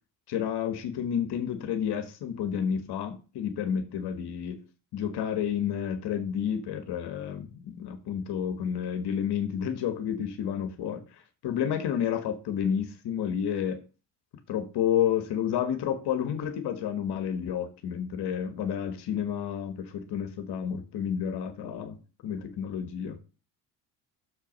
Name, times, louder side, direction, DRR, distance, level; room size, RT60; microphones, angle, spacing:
voice 1, 0.3-4.6 4.9-11.0 11.4-13.8 14.5-23.2, left 8 dB, 65° left, 1.4 m, -30 dB
6.7 x 4.7 x 5.3 m
supercardioid pair, 70°, 43 cm